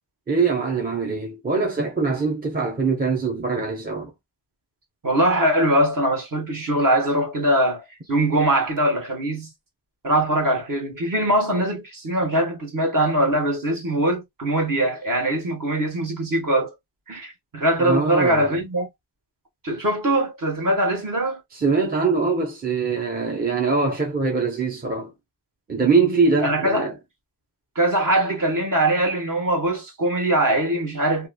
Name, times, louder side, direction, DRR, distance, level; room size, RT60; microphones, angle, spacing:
voice 1, 0.3-4.1 17.8-18.5 21.5-25.1 25.7-27.0, right 4 dB, 20° right, 0.7 m, -23 dB
voice 2, 5.0-9.5 10.0-16.7 17.1-18.9 19.6-21.4 26.4-26.9 27.7-31.3, right 1 dB, 45° right, 1.3 m, -22 dB
2.9 x 2.4 x 2.2 m
wide cardioid pair, 125°, 44 cm